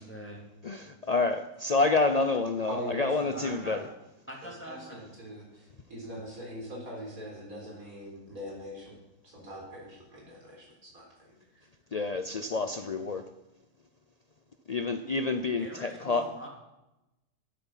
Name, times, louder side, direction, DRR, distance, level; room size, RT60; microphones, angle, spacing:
voice 1, 0.0-0.5 3.3-3.8 4.3-5.0 15.6-16.5, right 1 dB, 10° left, -1 dB, 2.6 m, -43 dB
voice 2, 0.6-3.8 11.9-13.2 14.7-16.3, left 3 dB, 90° left, 8 dB, 0.3 m, -28 dB
voice 3, 2.7-3.5 4.6-11.6, equal, 70° right, -1 dB, 4.6 m, -42 dB
11.5 x 10.5 x 5.6 m, 0.95 s
omnidirectional pair, 1.6 m